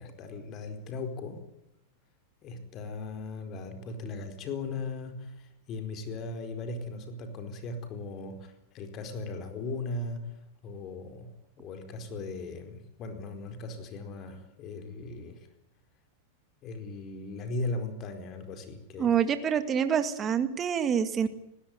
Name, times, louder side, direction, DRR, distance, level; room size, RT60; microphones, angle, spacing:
voice 1, 0.0-1.4 2.4-15.5 16.6-19.2, left 3 dB, 40° left, 7 dB, 4.6 m, -38 dB
voice 2, 19.0-21.3, right 8 dB, 25° right, 9 dB, 1.9 m, -26 dB
20.0 x 17.0 x 9.7 m, 0.85 s
hypercardioid pair, 125°, 0 cm